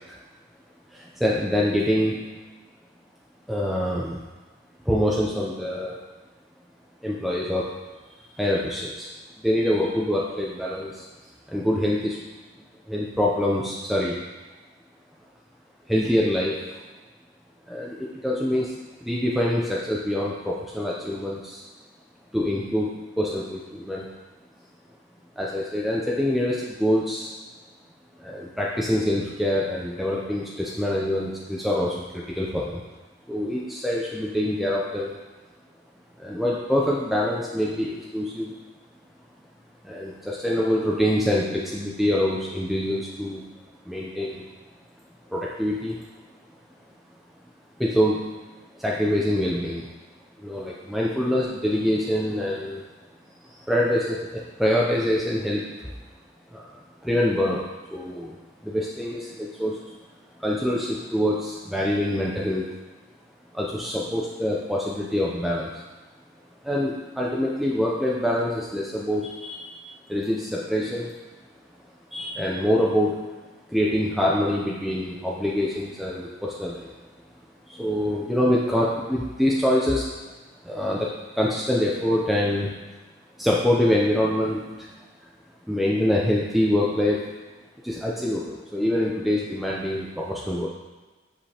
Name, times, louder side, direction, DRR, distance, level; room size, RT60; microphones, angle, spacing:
voice 1, 0.9-2.3 3.5-4.2 4.8-6.0 7.0-7.6 8.4-9.1 9.4-11.1 11.5-12.2 12.9-14.2 15.9-16.6 17.7-21.6 22.3-24.1 25.4-27.3 28.2-32.8 33.3-35.2 36.2-38.6 39.8-43.4 43.9-44.4 45.3-46.0 47.8-48.3 48.8-49.9 50.4-52.8 53.4-55.9 56.5-56.7 57.0-57.6 57.9-58.4 58.6-59.8 60.4-62.7 63.5-65.8 66.6-69.7 70.1-71.1 72.1-73.2 73.7-76.9 77.7-80.1 80.6-82.7 83.4-84.9 85.7-87.2 87.8-90.7, left 1 dB, ahead, -4 dB, 0.5 m, -25 dB
7.8 x 5.0 x 2.9 m, 1.3 s
head